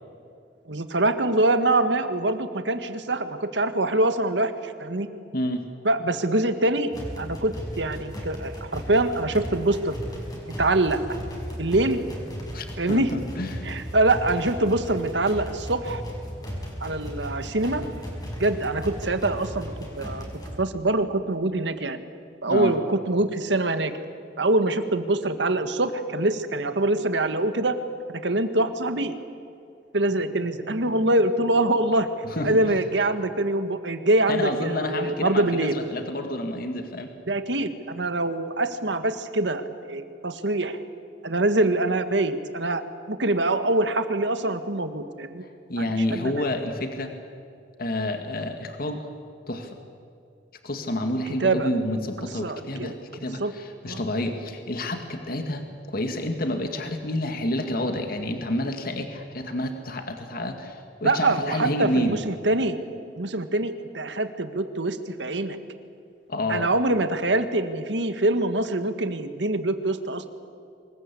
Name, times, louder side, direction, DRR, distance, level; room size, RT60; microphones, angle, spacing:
voice 1, 0.7-5.1 5.8-6.9 7.2-10.0 10.6-11.0 11.6-12.0 12.8-13.1 13.6-16.0 16.8-17.8 18.4-20.2 20.6-22.0 22.4-23.9 24.4-27.8 28.1-29.1 29.9-32.1 32.4-35.7 37.3-40.8 41.2-42.8 43.1-45.4 45.8-45.9 46.1-46.4 51.4-51.7 52.4-53.5 53.9-54.0 61.0-62.8 63.1-65.6 66.5-70.2, right 2 dB, 80° right, 9 dB, 1.7 m, -24 dB
voice 2, 5.3-5.7 12.5-13.7 22.5-22.8 32.2-32.8 34.3-37.1 45.4-47.1 47.8-49.1 49.5-49.7 50.6-62.2 66.3-66.7, left 1 dB, 55° left, 5 dB, 2.0 m, -29 dB
sound 1, 6.9-20.6, equal, 20° left, 5.4 m, -36 dB
25.0 x 21.0 x 8.5 m, 2.4 s
head